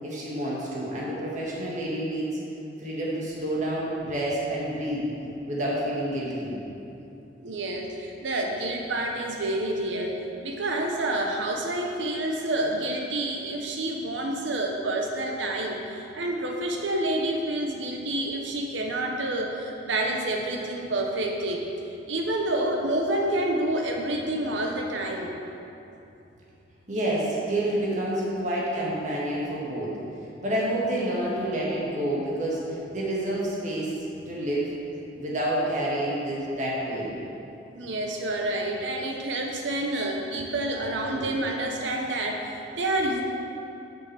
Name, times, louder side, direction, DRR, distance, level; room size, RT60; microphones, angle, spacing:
voice 1, 0.0-2.4 2.8-5.1 5.5-6.6 26.9-29.9 30.4-33.9 34.3-34.7 35.2-37.1 41.1-41.3, right 1 dB, 40° right, -6 dB, 1.9 m, -28 dB
voice 2, 7.4-10.1 10.4-21.6 22.1-25.4 37.7-43.2, right 1 dB, 80° right, 1 dB, 0.8 m, -28 dB
6.3 x 6.2 x 6.8 m, 2.8 s
head